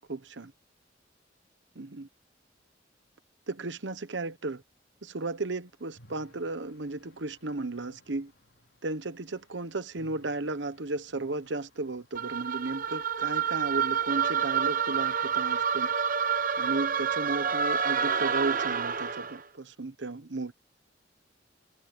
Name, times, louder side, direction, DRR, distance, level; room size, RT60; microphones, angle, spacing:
voice 1, 0.1-0.5 1.8-2.1 3.5-4.6 5.0-8.3 8.8-15.9 16.6-20.5, right 2 dB, 75° right, 1.1 m, -34 dB
sound 1, 5.9-12.2, equal, 90° left, 5.3 m, -61 dB
sound 2, 12.1-19.4, right 7 dB, 45° right, 0.9 m, -28 dB
head